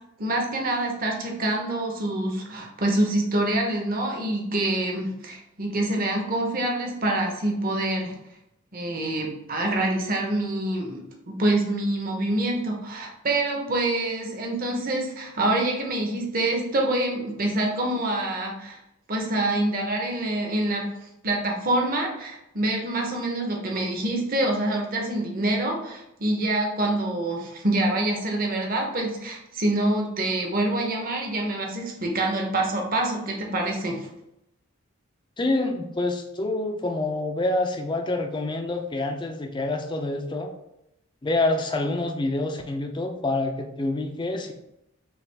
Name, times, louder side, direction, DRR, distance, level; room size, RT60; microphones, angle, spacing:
voice 1, 0.2-8.2 8.7-18.8 19.1-20.8 21.2-34.1, right 1 dB, 40° right, 1 dB, 0.8 m, -26 dB
voice 2, 35.4-40.5 41.2-44.5, left 2 dB, 20° left, 4 dB, 0.4 m, -27 dB
5.8 x 2.4 x 3.4 m, 0.84 s
head